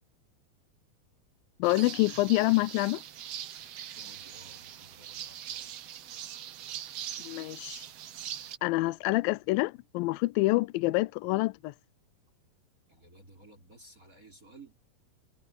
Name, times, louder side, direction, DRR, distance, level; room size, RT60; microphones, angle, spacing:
voice 1, 1.6-3.0 7.2-7.8 8.6-11.7, left 21 dB, 85° left, 2.1 m, -27 dB
sound 1, 1.6-8.6, right 10 dB, 90° right, 1.4 m, -42 dB
voice 2, 3.9-5.7 12.9-14.8, right 2 dB, 20° right, 4.2 m, -55 dB
omnidirectional pair, 4.6 m